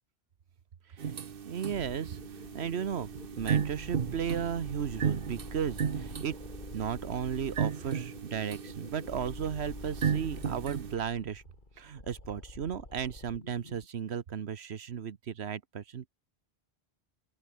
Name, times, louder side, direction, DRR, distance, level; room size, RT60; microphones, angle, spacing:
sound 1, 1.0-10.9, right 7 dB, 60° right, 1.1 m, -35 dB
voice 1, 1.4-2.2 2.5-3.1 3.4-6.4 6.7-11.4 11.8-16.1, right 8 dB, 80° right, 1.3 m, -35 dB
sound 2, 1.7-13.9, left 2 dB, 50° left, 3.7 m, -47 dB
open air
omnidirectional pair, 1.1 m